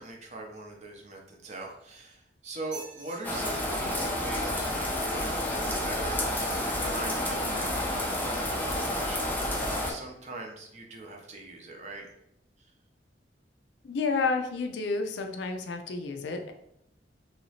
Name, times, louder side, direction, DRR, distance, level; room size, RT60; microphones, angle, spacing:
voice 1, 0.0-12.1, right 2 dB, 40° right, 1 dB, 0.6 m, -42 dB
sound 1, 1.5-2.2 2.6-3.2 5.1-5.4 6.3-6.8 7.4-7.5, right 4 dB, 70° right, 1.2 m, -48 dB
sound 2, 3.2-9.9, left 1 dB, 10° left, 0.5 m, -30 dB
voice 2, 13.8-16.5, left 4 dB, 70° left, 6 dB, 0.4 m, -30 dB
3.1 x 2.8 x 2.8 m, 0.75 s
head